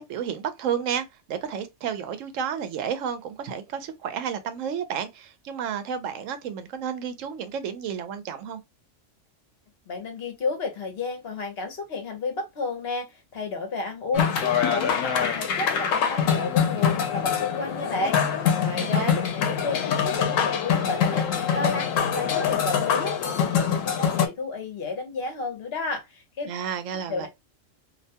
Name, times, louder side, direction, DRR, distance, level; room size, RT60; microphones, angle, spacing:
voice 1, 0.0-8.6 18.8-19.2 26.5-27.3, right 8 dB, 85° right, 1.0 m, -31 dB
voice 2, 9.9-26.5 27.1-27.3, left 3 dB, 55° left, 1.0 m, -32 dB
sound 1, 14.1-24.3, left 7 dB, 90° left, 1.0 m, -24 dB
2.6 x 2.2 x 2.7 m
omnidirectional pair, 1.3 m